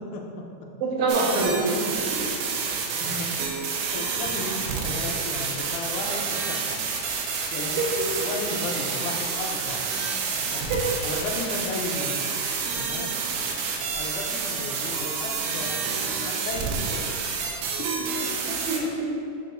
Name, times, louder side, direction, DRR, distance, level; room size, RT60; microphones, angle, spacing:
voice 1, 0.8-2.2 7.8-8.1 10.7-10.8 18.5-19.3, right 2 dB, 65° right, -3 dB, 1.7 m, -26 dB
sound 1, 1.1-18.8, right 5 dB, 85° right, 2.2 m, -29 dB
voice 2, 2.9-3.3 3.9-6.8 7.5-7.9 8.2-9.9 10.4-10.7 11.0-12.2 12.8-13.1 13.9-15.8 16.2-17.3, left 3 dB, 80° left, 0 dB, 2.1 m, -34 dB
7.2 x 6.5 x 2.5 m, 2.6 s
omnidirectional pair, 3.6 m